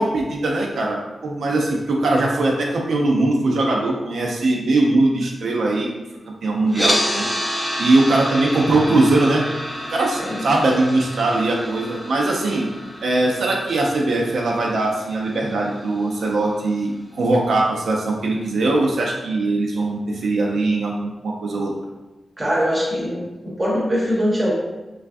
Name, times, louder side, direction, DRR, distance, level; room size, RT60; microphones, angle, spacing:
voice 1, 0.0-5.9 6.4-7.3 7.8-9.4 9.9-12.7 13.0-21.7, right 2 dB, 80° right, -1 dB, 0.4 m, -20 dB
sound 1, 6.7-16.8, equal, ahead, 0.4 m, -29 dB
voice 2, 22.4-24.5, equal, 15° right, -5 dB, 0.7 m, -22 dB
3.1 x 2.3 x 2.5 m, 1.1 s
wide cardioid pair, 165°, 0 cm